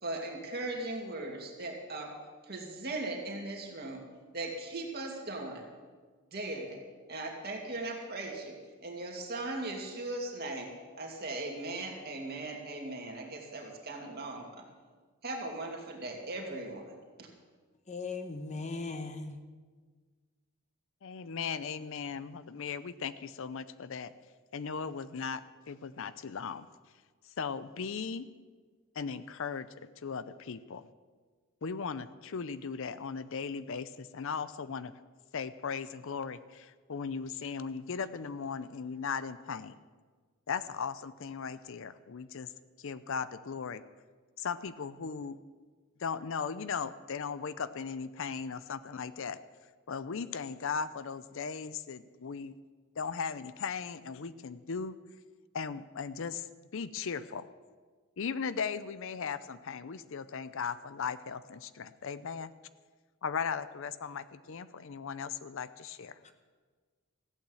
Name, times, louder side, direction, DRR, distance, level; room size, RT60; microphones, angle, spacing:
voice 1, 0.0-2.1 2.4-4.0 4.3-5.6 6.3-6.8 7.1-10.7 11.0-14.7 15.2-16.9 17.2-17.3, right 2 dB, 45° right, 1 dB, 2.5 m, -38 dB
voice 2, 17.9-19.4 66.2-66.3, left 3 dB, 35° left, 8 dB, 0.9 m, -38 dB
voice 3, 21.0-24.1 24.5-26.7 27.4-28.3 29.0-29.7 30.0-30.8 31.6-34.9 35.3-39.8 40.5-42.5 42.8-43.8 44.4-45.4 46.0-49.4 49.9-52.5 53.0-55.0 55.5-56.5 56.7-57.4 58.2-62.5 63.2-66.2, left 6 dB, 65° left, 14 dB, 0.5 m, -37 dB
14.5 x 8.9 x 7.7 m, 1.5 s
head